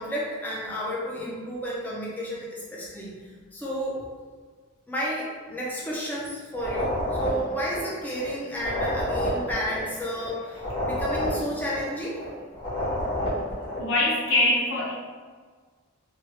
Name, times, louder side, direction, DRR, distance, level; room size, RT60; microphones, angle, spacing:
voice 1, 0.0-4.0 4.9-12.2, equal, 10° left, -6 dB, 0.4 m, -32 dB
sound 1, 6.5-13.9, left 1 dB, 25° left, 1.0 m, -30 dB
voice 2, 13.8-14.9, left 1 dB, 65° left, -4 dB, 0.8 m, -23 dB
3.1 x 2.2 x 3.1 m, 1.5 s
head